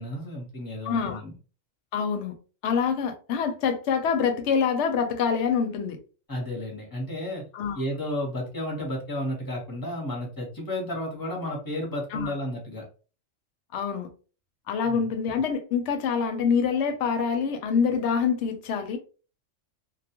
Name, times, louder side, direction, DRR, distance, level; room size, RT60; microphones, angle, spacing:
voice 1, 0.0-1.4 6.3-7.4 7.7-12.9 14.8-15.1, left 1 dB, 20° left, 0.7 m, -32 dB
voice 2, 0.9-1.2 1.9-2.3 2.6-6.0 7.5-7.8 12.1-12.3 13.7-14.1 14.7-19.0, left 6 dB, 70° left, 0.8 m, -25 dB
2.2 x 2.2 x 2.8 m
omnidirectional pair, 1.3 m